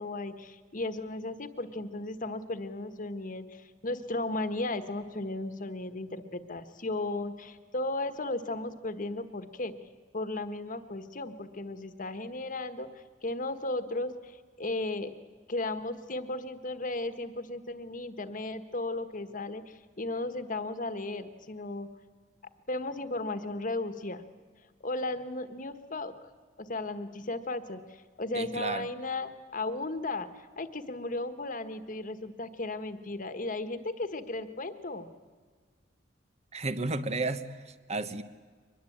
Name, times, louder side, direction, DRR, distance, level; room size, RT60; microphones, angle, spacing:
voice 1, 0.0-9.7 10.1-12.9 13.2-15.1 15.5-21.9 22.7-24.2 24.8-26.1 26.6-35.1, left 2 dB, 45° left, 10 dB, 1.5 m, -35 dB
voice 2, 28.3-28.9 36.5-37.4 37.9-38.2, right 3 dB, 35° right, 11 dB, 1.1 m, -32 dB
23.0 x 21.0 x 8.8 m, 1.5 s
head